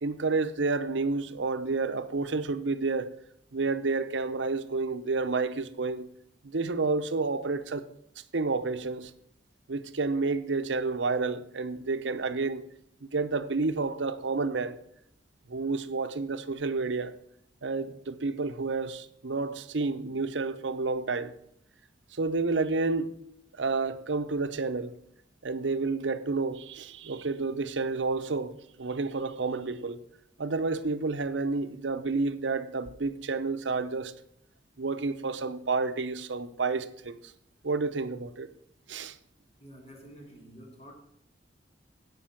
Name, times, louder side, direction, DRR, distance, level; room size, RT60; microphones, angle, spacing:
voice 1, 0.0-3.1 3.5-6.1 6.4-7.9 8.3-9.1 9.7-12.6 13.0-14.8 15.5-17.1 17.6-21.3 22.1-23.1 23.5-24.9 25.4-30.0 30.4-34.1 34.8-37.3 37.6-38.5 38.9-39.2, right 3 dB, 75° right, 0.8 m, -30 dB
voice 2, 39.6-40.9, equal, 35° left, 2.6 m, -49 dB
16.5 x 5.6 x 5.8 m
head